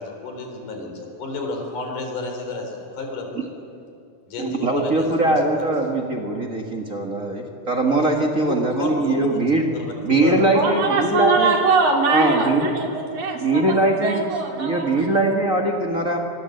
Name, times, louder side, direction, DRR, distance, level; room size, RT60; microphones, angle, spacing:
voice 1, 0.0-3.5 4.3-5.6 8.4-9.9 10.2-10.5, left 3 dB, 85° left, 2 dB, 5.7 m, -31 dB
voice 2, 4.4-9.6 10.0-11.5 12.1-12.7 13.3-14.3 14.6-16.2, right 2 dB, 30° right, 1 dB, 1.8 m, -21 dB
voice 3, 10.5-15.1, right 4 dB, 70° right, 1 dB, 4.2 m, -22 dB
26.5 x 21.5 x 8.0 m, 2.5 s
omnidirectional pair, 3.6 m